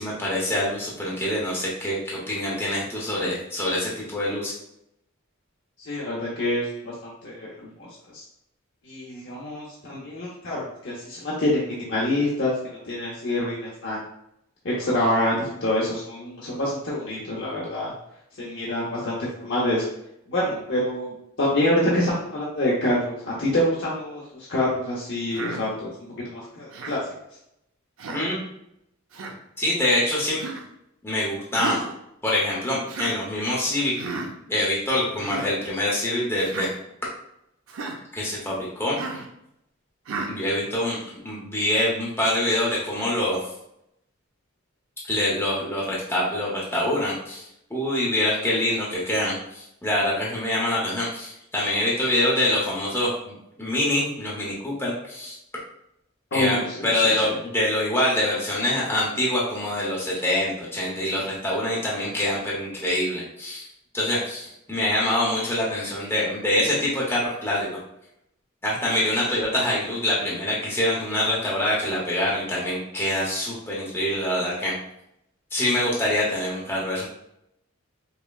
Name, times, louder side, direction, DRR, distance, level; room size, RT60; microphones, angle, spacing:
voice 1, 0.0-4.5 28.1-28.4 29.6-30.4 31.0-31.8 32.2-33.9 34.5-36.7 38.1-39.0 40.3-43.4 45.1-47.4 47.7-55.3 56.3-63.7 63.9-67.8 68.6-74.7 75.5-77.1, left 1 dB, 10° left, -6 dB, 0.8 m, -25 dB
voice 2, 5.9-6.9 7.2-7.9 8.1-8.2 8.9-14.0 14.6-17.9 18.4-19.8 20.3-25.9 26.2-27.0 56.3-56.9, left 1 dB, 60° left, -6 dB, 0.7 m, -26 dB
Human voice, 25.3-25.6 26.7-27.0 28.0-28.3 29.1-29.3 30.4-30.6 31.6-31.9 32.9-33.2 34.0-34.3 35.1-35.5 36.4-36.7 37.7-38.0 38.9-39.3 40.1-40.3, right 3 dB, 80° right, 0.6 m, -33 dB
5.3 x 2.1 x 2.3 m, 0.79 s
head